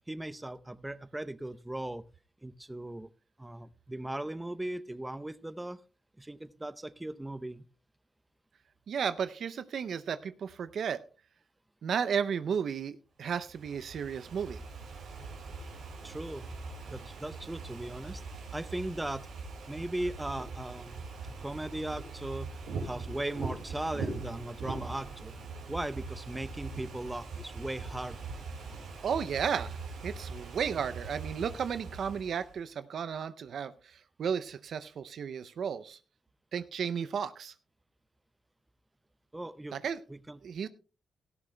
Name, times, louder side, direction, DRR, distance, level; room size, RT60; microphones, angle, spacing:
voice 1, 0.1-2.0 2.4-3.1 3.4-5.8 6.2-7.7 16.0-16.6 16.9-18.2 18.5-19.3 19.7-21.1 21.4-25.3 25.7-28.2 39.3-39.8 40.1-40.4, right 1 dB, 15° right, 15 dB, 0.7 m, -38 dB
voice 2, 8.9-11.0 11.8-14.6 29.0-29.8 30.0-36.0 36.5-37.5 39.7-40.0 40.4-40.7, right 7 dB, 70° right, 12 dB, 0.5 m, -33 dB
Ocean / Fireworks, 13.3-32.6, right 4 dB, 85° right, 4.4 m, -42 dB
17.5 x 13.0 x 2.2 m, 0.36 s
supercardioid pair, 55°, 0 cm